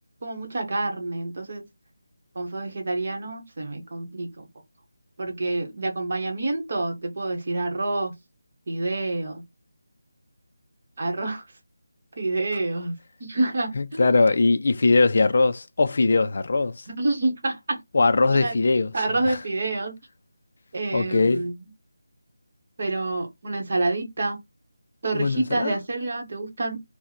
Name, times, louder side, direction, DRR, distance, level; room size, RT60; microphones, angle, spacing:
voice 1, 0.2-1.6 2.3-4.5 5.2-8.1 8.7-9.4 11.0-11.4 12.2-12.9 13.2-14.1 16.9-17.8 18.3-18.5 18.9-19.9 20.7-21.6 22.8-24.4 25.0-26.8, right 2 dB, 35° right, 0.9 m, -27 dB
voice 2, 13.7-16.8 17.9-18.9 19.2-19.4 20.9-21.5 25.1-25.8, left 3 dB, 40° left, 0.3 m, -21 dB
2.9 x 2.0 x 3.9 m
figure-of-eight pair, 180°, 0 cm